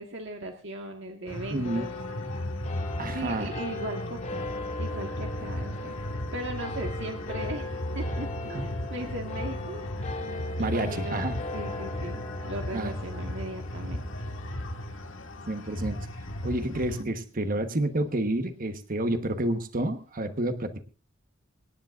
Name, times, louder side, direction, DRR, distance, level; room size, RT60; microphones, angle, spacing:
voice 1, 0.0-1.9 2.3-2.4 3.1-4.5 4.8-5.9 6.3-7.7 7.9-9.9 10.1-11.3 11.5-14.3, right 1 dB, 65° right, 2 dB, 1.7 m, -38 dB
sound 1, 1.3-17.0, equal, 80° left, 1.7 m, -36 dB
voice 2, 1.5-1.9 3.0-3.5 8.5-8.7 10.6-11.4 12.7-12.9 15.5-16.0 16.4-20.9, right 1 dB, 45° right, 8 dB, 1.2 m, -29 dB
sound 2, 1.6-18.4, left 3 dB, 40° left, 2.6 m, -40 dB
25.5 x 10.5 x 2.5 m, 0.37 s
head